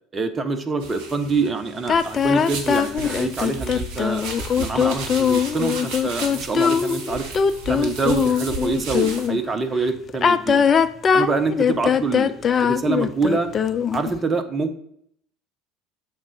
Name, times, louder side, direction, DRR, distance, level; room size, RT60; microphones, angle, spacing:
voice 1, 0.1-4.3 4.6-7.3 7.7-10.6 11.1-13.5 13.9-14.8, right 4 dB, 25° right, 7 dB, 0.8 m, -25 dB
sound 1, 0.8-9.3, right 3 dB, 55° right, 1.4 m, -34 dB
sound 2, 1.9-9.4 10.1-14.1, left 7 dB, 35° left, 0.4 m, -21 dB
7.0 x 3.7 x 5.4 m, 0.69 s
figure-of-eight pair, 65°, 0 cm